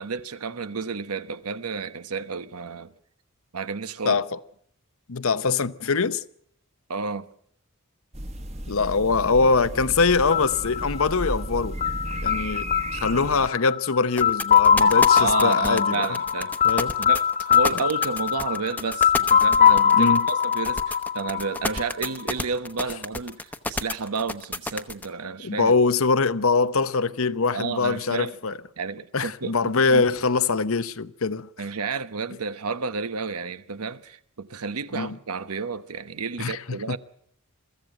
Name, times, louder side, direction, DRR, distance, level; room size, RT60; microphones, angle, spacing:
voice 1, 0.0-2.9 3.5-4.2 6.9-7.3 15.2-16.5 17.0-25.7 27.5-28.3 28.8-29.5 29.9-30.0 31.6-37.0, right 4 dB, 85° right, 1.1 m, -31 dB
voice 2, 4.1-4.4 5.1-6.2 8.7-11.8 12.2-16.0 16.6-17.0 20.0-20.3 25.4-28.6 29.1-31.5 34.9-35.2 36.4-37.0, left 4 dB, 65° left, 0.8 m, -23 dB
sound 1, 8.1-13.5, right 1 dB, 30° right, 1.4 m, -34 dB
sound 2, 10.3-22.1, left 8 dB, 35° left, 1.3 m, -22 dB
sound 3, 14.2-25.1, left 2 dB, 10° left, 0.9 m, -30 dB
22.5 x 15.0 x 9.0 m
head